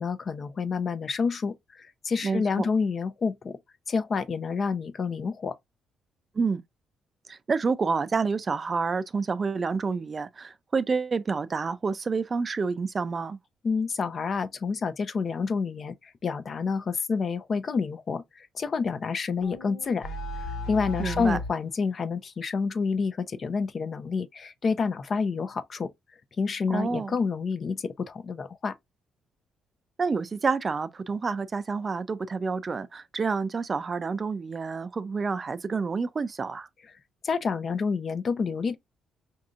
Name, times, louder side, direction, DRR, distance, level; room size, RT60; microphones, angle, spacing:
voice 1, 0.0-1.6 2.0-3.6 3.9-5.5 13.6-15.9 16.2-18.2 18.5-20.1 20.7-25.9 26.4-28.7 37.2-38.8, left 5 dB, 45° left, 0.6 m, -28 dB
voice 2, 2.2-2.7 6.4-6.6 7.3-13.4 21.0-21.4 26.7-27.1 30.0-36.7, right 4 dB, 35° right, 0.4 m, -28 dB
sound 1, 19.4-21.6, left 1 dB, 85° left, 1.4 m, -35 dB
5.2 x 2.7 x 2.4 m
cardioid pair, 90°, 0 cm